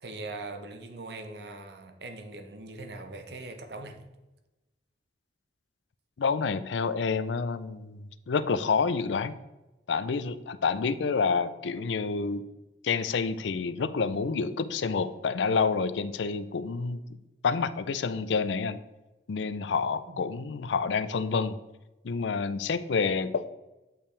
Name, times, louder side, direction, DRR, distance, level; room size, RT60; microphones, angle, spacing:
voice 1, 0.0-4.0 20.1-20.2, right 2 dB, 65° right, 6 dB, 0.9 m, -41 dB
voice 2, 6.2-9.4 9.9-12.4 12.8-17.0 17.4-18.8 19.3-21.6 22.0-23.5, left 5 dB, 85° left, 14 dB, 0.4 m, -28 dB
8.7 x 5.6 x 3.3 m, 1.0 s
head